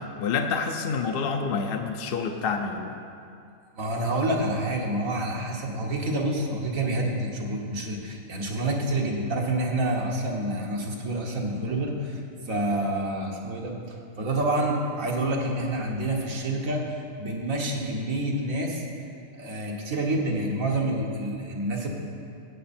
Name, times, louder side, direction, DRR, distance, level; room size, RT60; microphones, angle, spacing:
voice 1, 0.0-3.0, left 5 dB, 55° left, 4 dB, 0.7 m, -28 dB
voice 2, 3.8-16.8 17.2-18.8 19.4-21.9, right 1 dB, 85° right, -1 dB, 1.9 m, -28 dB
15.5 x 8.6 x 4.3 m, 2.5 s
omnidirectional pair, 1.4 m